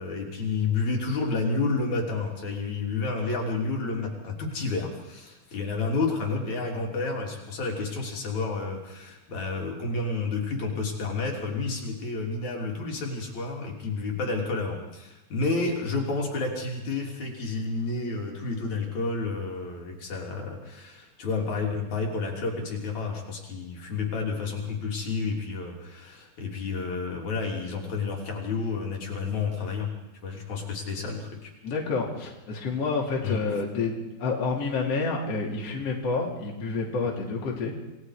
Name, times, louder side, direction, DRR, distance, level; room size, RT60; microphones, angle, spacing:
voice 1, 0.0-29.9 30.2-31.5 33.2-33.4, left 3 dB, 70° left, 0 dB, 4.3 m, -30 dB
voice 2, 31.6-37.7, left 4 dB, 55° left, -2 dB, 3.8 m, -29 dB
28.0 x 19.5 x 4.9 m, 0.96 s
omnidirectional pair, 3.5 m